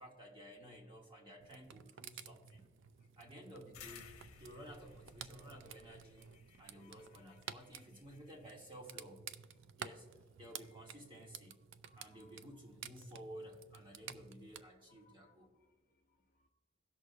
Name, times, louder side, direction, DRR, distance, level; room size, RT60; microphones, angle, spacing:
voice 1, 0.0-2.6 3.2-4.1 4.4-6.3 6.6-9.2 9.8-10.1 10.4-11.5 12.0-15.5, equal, 20° right, -1 dB, 1.5 m, -54 dB
sound 1, 1.4-14.6, right 8 dB, 60° right, 0.4 m, -53 dB
voice 2, 2.4-3.2 4.4-4.5 5.8-5.9 6.4-7.7 9.6-10.1 10.4-11.1 11.8-12.7 13.9-14.0 14.5-16.5, left 5 dB, 40° left, 2 dB, 0.8 m, -73 dB
sound 2, 3.7-8.7, left 7 dB, 80° left, 0.9 m, -59 dB
17.5 x 6.2 x 2.7 m, 1.3 s
head